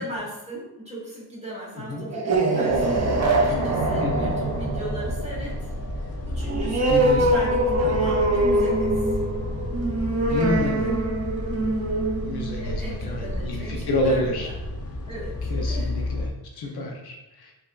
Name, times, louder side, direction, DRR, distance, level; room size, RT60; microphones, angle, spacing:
voice 1, 0.0-9.1 10.3-11.0 12.6-14.5 15.1-16.0 16.6-16.8, equal, 15° right, -6 dB, 1.4 m, -37 dB
sound 1, 2.0-13.2, right 2 dB, 40° right, 0.6 m, -24 dB
sound 2, 2.7-16.3, left 1 dB, 40° left, 0.5 m, -31 dB
voice 2, 4.0-4.3 6.9-7.3 7.8-8.1 10.3-11.0 12.2-14.5 15.5-16.2 16.6-17.5, left 1 dB, 75° left, 1 dB, 0.8 m, -28 dB
5.3 x 2.6 x 2.4 m, 0.97 s
wide cardioid pair, 145°, 39 cm